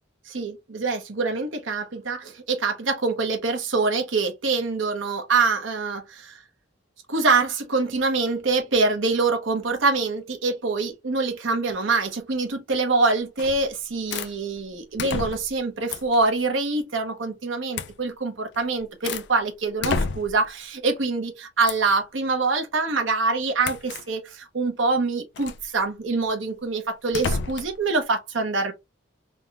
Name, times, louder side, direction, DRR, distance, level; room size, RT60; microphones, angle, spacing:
voice 1, 0.3-6.4 7.1-28.7, right 3 dB, 90° right, 0.9 m, -25 dB
sound 1, 13.4-13.7 14.1-14.3 15.0-15.6 15.9-16.2 17.7-18.0 18.5-19.3 19.8-20.5 21.7-21.9 23.6-24.1 25.4-25.7 27.1-27.8, left 4 dB, 65° left, 0.3 m, -30 dB
3.5 x 2.1 x 2.8 m
head